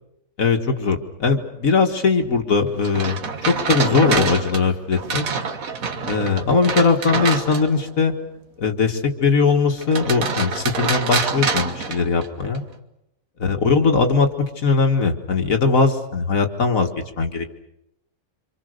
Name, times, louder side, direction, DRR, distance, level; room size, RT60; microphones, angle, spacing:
voice 1, 0.4-3.2 3.5-5.3 6.0-8.1 8.6-12.6 13.4-14.3 14.6-16.9 17.2-17.5, left 4 dB, 65° left, 4 dB, 2.2 m, -20 dB
sound 1, 2.8-7.9 9.8-12.6, right 5 dB, 70° right, 1.9 m, -26 dB
26.5 x 26.0 x 6.6 m, 0.85 s
omnidirectional pair, 1.5 m